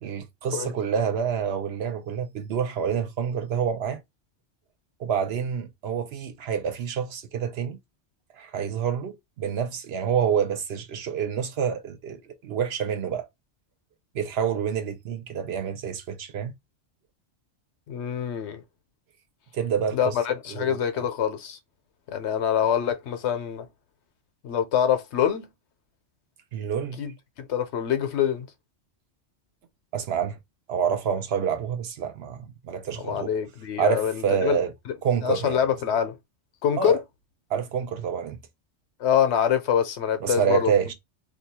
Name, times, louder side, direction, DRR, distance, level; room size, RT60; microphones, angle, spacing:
voice 1, 0.0-4.0 5.0-7.8 8.4-13.3 14.1-16.5 19.5-20.1 20.5-21.0 26.5-27.0 29.9-30.4 30.7-33.3 33.8-34.7 35.0-35.8 36.8-37.0 37.5-38.4 40.2-40.9, right 7 dB, 65° right, 0.8 m, -27 dB
voice 2, 17.9-18.6 19.9-21.6 22.1-23.7 24.4-25.5 27.0-27.1 27.4-28.5 33.0-34.9 35.2-36.2 36.6-37.0 39.0-40.7, left 9 dB, 75° left, 0.9 m, -25 dB
2.8 x 2.3 x 4.1 m
omnidirectional pair, 1.2 m